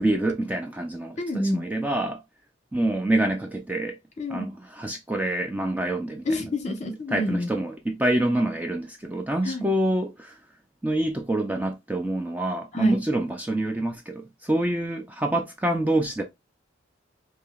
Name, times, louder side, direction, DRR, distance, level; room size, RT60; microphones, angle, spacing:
voice 1, 0.0-1.2 1.5-2.2 2.7-4.0 4.3-6.3 7.1-10.3 10.8-16.2, right 1 dB, 10° right, 0.4 m, -26 dB
voice 2, 1.2-1.6 4.2-4.5 6.2-7.5 9.4-9.7 12.7-13.0, left 1 dB, 40° left, 1.0 m, -28 dB
4.7 x 2.7 x 2.3 m
head